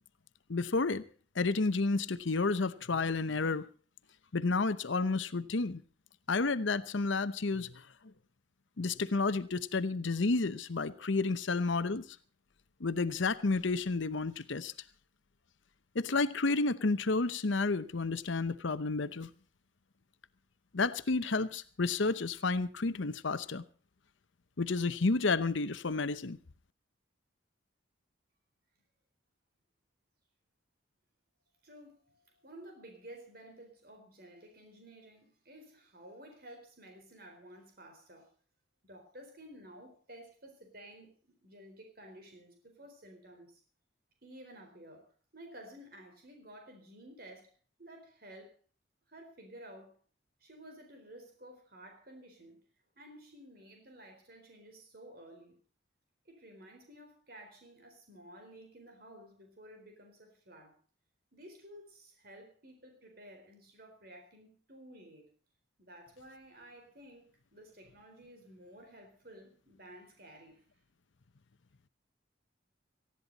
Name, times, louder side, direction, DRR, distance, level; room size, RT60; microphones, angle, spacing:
voice 1, 0.5-1.0 1.3-3.7 4.3-5.8 6.3-7.7 8.8-12.1 12.8-14.7 15.9-19.3 20.7-23.6 24.6-26.4, left 3 dB, 70° left, 0.8 m, -31 dB
voice 2, 31.6-38.3 38.8-41.1 41.4-43.6 44.2-47.5 47.8-48.6 49.1-50.0 50.4-52.6 53.0-55.6 56.3-60.8 61.3-65.3 65.8-70.6, right 1 dB, 50° right, 4.2 m, -53 dB
19.0 x 15.0 x 4.1 m
head